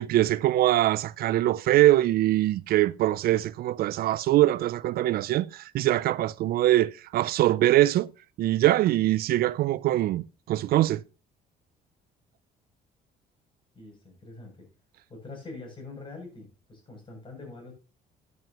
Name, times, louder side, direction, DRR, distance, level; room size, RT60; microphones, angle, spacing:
voice 1, 0.0-8.1 8.4-11.0, right 14 dB, 65° right, 0.4 m, -23 dB
voice 2, 13.7-14.7 15.1-17.7, left 3 dB, 30° left, 7.8 m, -44 dB
14.0 x 9.6 x 3.0 m
cardioid pair, 110°, 17 cm